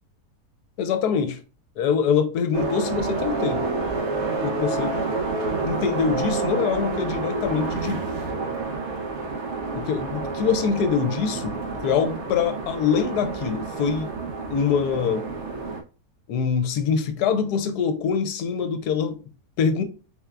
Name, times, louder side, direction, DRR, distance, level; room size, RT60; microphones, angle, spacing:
voice 1, 0.8-1.4 1.8-3.6 4.4-4.9 5.6-8.0 9.7-14.1 14.5-15.2 16.3-19.2 19.6-19.8, left 6 dB, 80° left, 1.2 m, -24 dB
sound 1, 2.5-15.8, right 3 dB, 55° right, 0.9 m, -29 dB
4.3 x 3.5 x 2.2 m
omnidirectional pair, 1.7 m